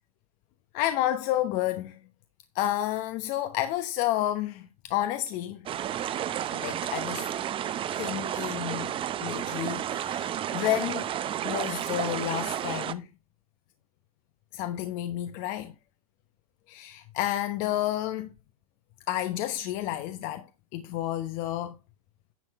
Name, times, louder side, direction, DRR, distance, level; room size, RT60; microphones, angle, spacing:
voice 1, 0.7-2.0 2.5-5.6 6.5-7.3 7.9-8.9 9.2-11.1 11.4-13.1 14.5-15.7 16.7-18.3 19.1-21.7, left 13 dB, 45° left, 1.0 m, -30 dB
sound 1, 5.7-12.9, right 10 dB, 30° right, 0.8 m, -32 dB
10.5 x 6.3 x 4.2 m
hypercardioid pair, 100°, 18 cm